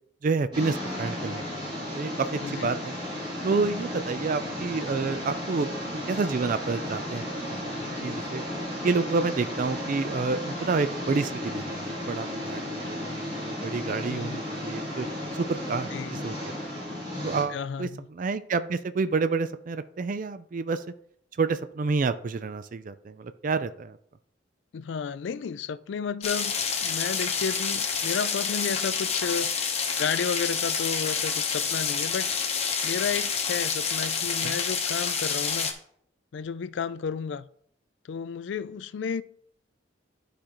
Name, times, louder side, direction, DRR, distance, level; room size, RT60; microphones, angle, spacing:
voice 1, 0.2-2.9 3.4-8.4 8.8-15.1 15.3-16.5 17.2-20.8 21.4-24.0 34.4-34.6, right 4 dB, 45° right, 0.4 m, -29 dB
sound 1, 0.5-17.4, left 1 dB, 25° right, 3.2 m, -34 dB
voice 2, 14.1-14.4 15.9-16.2 17.5-18.1 24.7-29.7 30.0-32.3 32.8-35.7 36.3-37.5 38.0-39.2, left 6 dB, 70° left, 0.3 m, -32 dB
sound 2, 26.2-35.7, left 6 dB, 35° left, 0.9 m, -28 dB
11.5 x 5.0 x 3.0 m
head